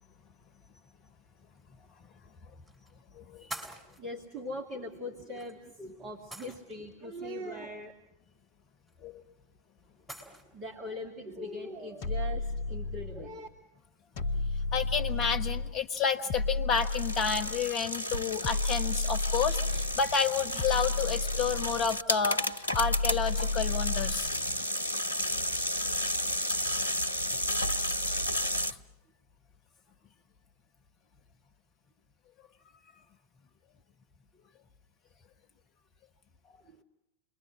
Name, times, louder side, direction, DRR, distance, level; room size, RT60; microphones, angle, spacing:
sound 1, 1.5-1.6 2.7-2.9 3.5-4.0 5.3-5.5 6.3-6.9 8.9-9.0 10.1-10.4, equal, 5° right, 5.4 m, -43 dB
voice 1, 3.1-3.5 9.0-9.2 14.7-24.3, left 6 dB, 30° left, 14 dB, 1.5 m, -30 dB
voice 2, 4.0-7.9 10.5-13.5 36.6-36.8, left 1 dB, 30° right, 1 dB, 2.3 m, -41 dB
sound 2, 12.0-13.3 14.2-15.8 16.3-17.7 18.4-20.1 20.6-22.0 22.7-24.3, left 3 dB, 50° left, 1.2 m, -32 dB
sound 3, 16.7-28.7, left 1 dB, 75° left, 0.8 m, -32 dB
28.0 x 22.5 x 6.3 m, 0.90 s
figure-of-eight pair, 90°, 0 cm